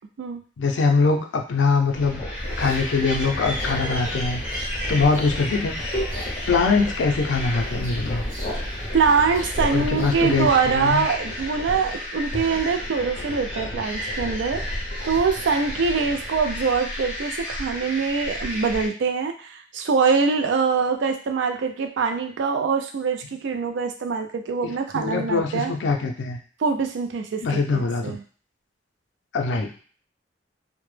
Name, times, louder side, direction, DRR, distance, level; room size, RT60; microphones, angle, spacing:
voice 1, 0.6-2.2 2.6-4.4 4.9-5.8 6.5-8.2 9.7-11.0 24.6-26.4 27.4-28.2 29.3-29.8, left 4 dB, 85° left, 3 dB, 0.4 m, -23 dB
sound 1, 1.9-16.4, left 1 dB, 35° left, 0.5 m, -36 dB
sound 2, 1.9-18.9, left 1 dB, 5° right, 0.6 m, -32 dB
sound 3, 2.3-10.7, equal, 45° right, 0.9 m, -37 dB
voice 2, 8.9-25.7 26.6-28.2, right 5 dB, 80° right, 5 dB, 0.4 m, -24 dB
2.1 x 2.0 x 3.1 m, 0.42 s
head